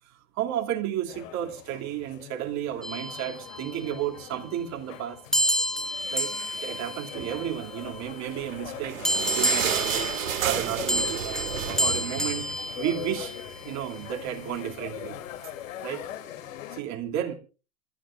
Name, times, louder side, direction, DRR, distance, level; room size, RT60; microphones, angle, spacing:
voice 1, 0.1-5.2 6.1-10.1 10.4-13.3 13.6-15.2 15.8-16.1 16.7-17.3, right 11 dB, 40° right, 2.9 m, -33 dB
sound 1, 1.1-16.8, left 11 dB, 70° left, 3.3 m, -42 dB
sound 2, 2.8-4.0 5.3-8.0 9.0-13.6, equal, ahead, 0.7 m, -30 dB
sound 3, 8.4-13.1 13.5-13.6 13.9-14.0 14.7-14.8, right 9 dB, 75° right, 3.0 m, -31 dB
27.0 x 12.5 x 2.6 m
hypercardioid pair, 105°, 41 cm